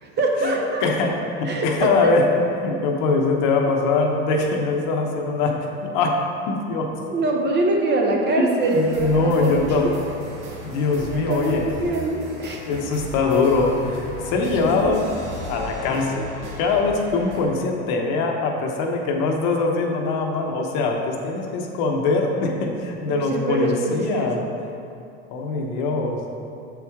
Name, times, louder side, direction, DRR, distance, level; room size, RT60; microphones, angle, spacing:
voice 1, 0.0-0.8 1.4-2.1 7.1-10.0 11.0-12.6 14.8-15.1 23.1-24.3, right 2 dB, 30° right, 0 dB, 0.9 m, -24 dB
voice 2, 0.8-2.3 2.6-6.2 6.5-7.0 8.4-9.9 10.6-11.7 12.7-15.1 15.5-16.3 16.6-24.4 25.3-26.2, left 3 dB, 60° left, 1 dB, 1.0 m, -22 dB
sound 1, 8.6-17.4, equal, 75° right, 1.5 m, -36 dB
7.4 x 4.7 x 3.6 m, 2.6 s
supercardioid pair, 105°, 35 cm